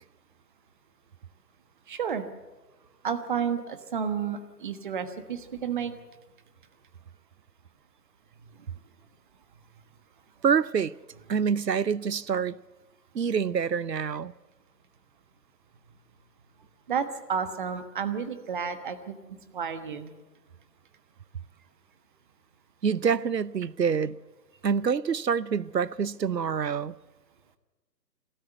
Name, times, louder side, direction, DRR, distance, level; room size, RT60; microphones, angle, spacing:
voice 1, 1.9-2.2 3.0-5.9 16.9-19.2 19.5-20.1, right 7 dB, 30° right, 1.3 m, -31 dB
voice 2, 10.4-10.9 11.3-12.6 13.1-14.3 22.8-24.2 24.6-27.0, right 6 dB, 80° right, 0.8 m, -26 dB
26.0 x 13.5 x 8.0 m
figure-of-eight pair, 140°, 49 cm